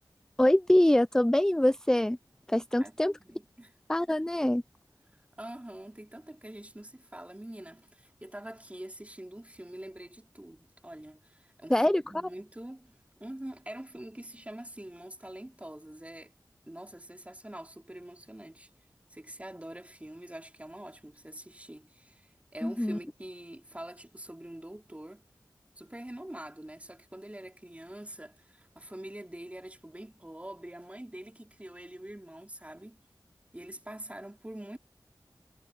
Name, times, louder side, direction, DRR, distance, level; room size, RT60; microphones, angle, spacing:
voice 1, 0.4-2.2 2.5-3.1 3.9-4.6 11.7-12.0 22.6-23.0, left 1 dB, 10° left, 0.4 m, -24 dB
voice 2, 2.8-3.7 5.4-12.9 13.2-16.3 16.7-18.7 19.1-25.2 25.8-33.0 33.5-34.8, right 1 dB, 15° right, 3.6 m, -45 dB
wide cardioid pair, 50°, 8 cm